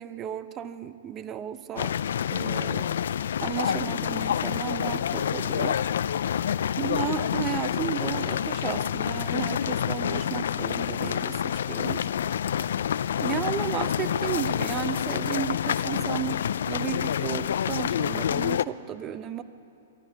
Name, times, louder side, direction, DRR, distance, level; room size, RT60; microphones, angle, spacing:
voice 1, 0.0-1.9 2.3-2.9 3.4-5.8 6.8-12.1 13.2-19.4, right 10 dB, 25° right, 12 dB, 0.9 m, -34 dB
sound 1, 1.8-18.6, left 9 dB, 75° left, 0.5 m, -28 dB
23.5 x 13.0 x 9.8 m, 2.7 s
hypercardioid pair, 145°, 0 cm